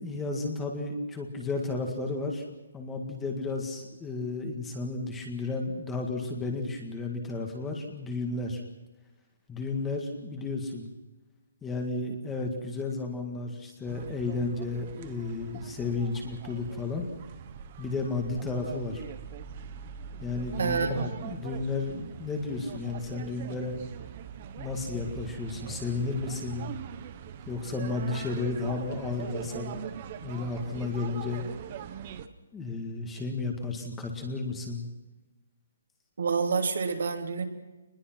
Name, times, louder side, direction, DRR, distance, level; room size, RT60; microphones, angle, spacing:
voice 1, 0.0-2.4 2.7-8.6 9.5-10.9 11.6-17.1 17.8-19.0 20.2-23.8 24.6-26.7 27.5-29.8 30.2-31.4 32.5-34.9, left 3 dB, 5° left, 2 dB, 1.8 m, -33 dB
sound 1, 13.9-32.3, right 8 dB, 25° right, 1.1 m, -42 dB
voice 2, 20.6-21.2 36.2-37.4, right 5 dB, 60° right, 4 dB, 3.2 m, -28 dB
25.0 x 21.0 x 6.0 m, 1.1 s
hypercardioid pair, 175°, 0 cm